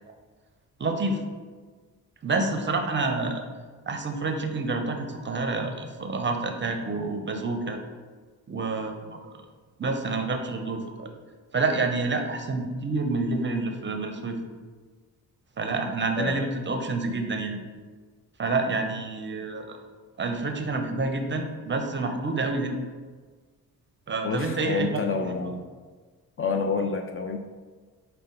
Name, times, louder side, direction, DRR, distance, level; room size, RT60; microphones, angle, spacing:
voice 1, 0.8-1.2 2.2-3.4 3.9-7.8 8.5-9.2 9.8-11.1 11.5-14.4 15.6-17.6 18.4-19.8 20.2-22.8 24.1-25.3, right 3 dB, 30° right, 5 dB, 0.6 m, -28 dB
voice 2, 16.2-16.5 24.2-25.6 26.4-27.4, left 5 dB, 35° left, 5 dB, 0.4 m, -28 dB
5.1 x 2.2 x 3.7 m, 1.4 s
supercardioid pair, 55°, 39 cm